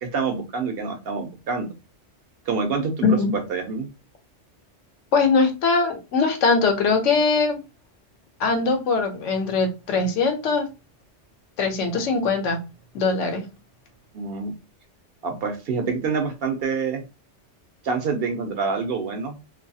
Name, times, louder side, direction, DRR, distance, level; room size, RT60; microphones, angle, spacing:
voice 1, 0.0-1.7 2.5-3.1 3.3-3.9 14.1-14.5 15.2-17.0 17.8-19.4, right 5 dB, 65° right, 5 dB, 0.7 m, -26 dB
voice 2, 3.0-3.4 5.1-7.6 8.4-10.7 11.6-12.6 12.9-13.4, left 4 dB, 85° left, 5 dB, 1.0 m, -21 dB
2.5 x 2.3 x 2.6 m, 0.28 s
omnidirectional pair, 1.2 m